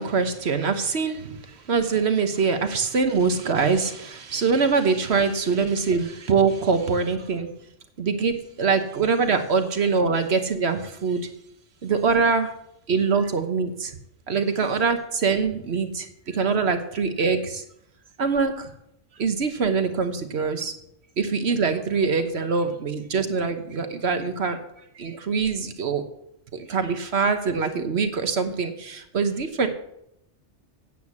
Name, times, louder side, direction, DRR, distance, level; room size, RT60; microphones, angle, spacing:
voice 1, 0.0-7.5 8.0-11.3 11.8-12.5 12.9-13.9 14.3-17.6 18.2-18.7 19.2-20.7 21.2-24.6 25.0-26.0 26.5-29.7, right 5 dB, 60° right, 8 dB, 1.3 m, -24 dB
9.2 x 8.0 x 7.2 m, 0.77 s
omnidirectional pair, 1.2 m